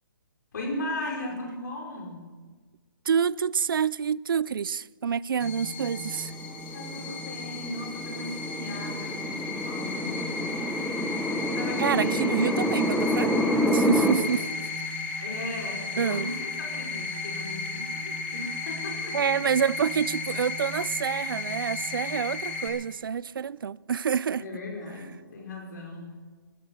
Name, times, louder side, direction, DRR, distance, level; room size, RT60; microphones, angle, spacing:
voice 1, 0.5-2.2 6.7-11.1 11.5-12.6 15.2-19.3 24.4-26.2, left 1 dB, 55° left, 5.1 m, -37 dB
voice 2, 3.1-6.3 11.8-13.3 13.7-14.5 16.0-16.3 19.1-24.4, right 7 dB, 70° right, 0.4 m, -27 dB
sound 1, 5.4-22.7, left 3 dB, 20° left, 2.1 m, -34 dB
sound 2, 6.1-14.1, equal, ahead, 0.6 m, -28 dB
14.5 x 13.0 x 6.6 m
hypercardioid pair, 165°, 12 cm